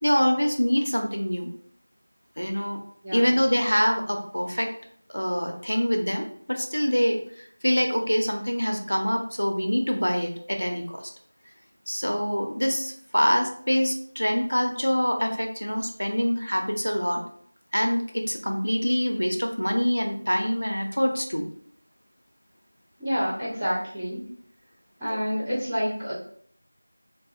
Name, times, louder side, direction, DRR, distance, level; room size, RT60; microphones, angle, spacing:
voice 1, 0.0-1.5 2.4-2.8 3.1-4.7 5.1-11.0 11.9-17.2 17.7-21.4, equal, 75° left, 3 dB, 0.5 m, -25 dB
voice 2, 3.0-3.3 23.0-24.2 25.0-26.1, equal, 5° right, -16 dB, 0.5 m, -28 dB
2.7 x 2.4 x 2.3 m, 0.62 s
figure-of-eight pair, 175°, 0 cm